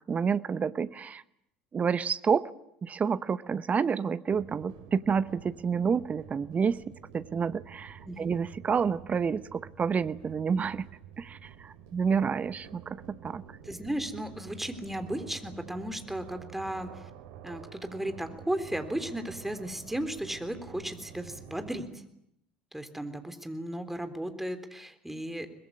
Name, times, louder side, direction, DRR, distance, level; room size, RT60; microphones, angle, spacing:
voice 1, 0.1-1.2 1.7-2.4 2.8-6.8 7.1-10.9 11.2-13.6, right 6 dB, 30° right, 16 dB, 1.0 m, -29 dB
sound 1, 4.3-21.9, right 8 dB, 70° right, 2.6 m, -49 dB
voice 2, 13.6-17.1 17.4-22.0 22.7-25.5, right 1 dB, 5° right, 8 dB, 3.6 m, -35 dB
23.0 x 21.0 x 9.8 m, 0.74 s
hypercardioid pair, 65°, 5 cm